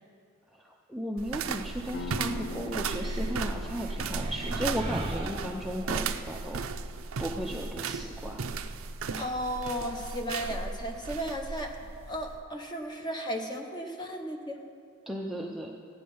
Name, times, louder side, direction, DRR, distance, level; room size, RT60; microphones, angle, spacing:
voice 1, 0.5-6.6 7.2-8.4 15.1-15.8, equal, ahead, -2 dB, 0.6 m, -35 dB
sound 1, 1.2-12.4, right 4 dB, 90° right, 0.6 m, -35 dB
sound 2, 1.9-7.3, left 5 dB, 55° left, 0.5 m, -45 dB
sound 3, 2.9-6.2, right 1 dB, 25° right, 0.9 m, -39 dB
voice 2, 9.2-11.7 12.1-14.6, equal, 20° left, 3 dB, 1.1 m, -34 dB
15.0 x 9.4 x 5.5 m, 2.4 s
head